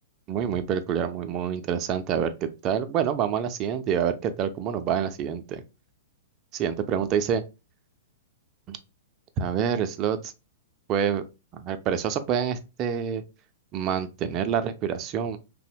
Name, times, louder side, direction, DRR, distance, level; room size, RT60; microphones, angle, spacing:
voice 1, 0.3-5.6 6.5-7.4 8.7-8.8 9.4-10.3 10.9-11.2 11.5-13.2 13.7-15.4, right 8 dB, 35° right, 0.3 m, -27 dB
2.7 x 2.0 x 2.6 m
figure-of-eight pair, 105°, 0 cm